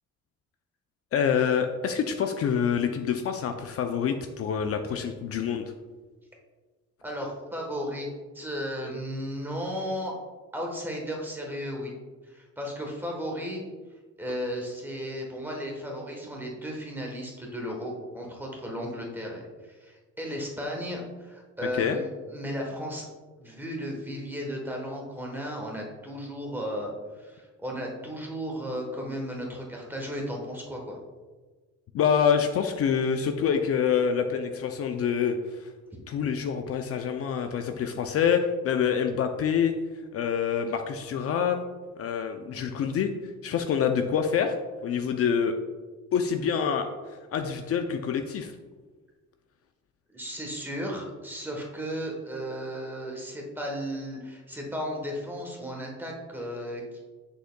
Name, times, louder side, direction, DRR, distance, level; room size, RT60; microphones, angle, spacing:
voice 1, 1.1-5.7 21.7-22.0 31.9-35.7 36.1-39.7 40.1-41.6 42.0-43.1 43.4-44.5 44.8-45.5 46.1-48.5, left 7 dB, 55° left, 6 dB, 0.4 m, -26 dB
voice 2, 7.0-8.1 8.3-10.1 10.5-11.9 12.3-13.6 14.2-19.4 19.8-23.1 23.4-31.0 50.1-57.0, equal, 5° right, 0 dB, 1.1 m, -35 dB
7.6 x 6.5 x 2.2 m, 1.3 s
cardioid pair, 165°, 29 cm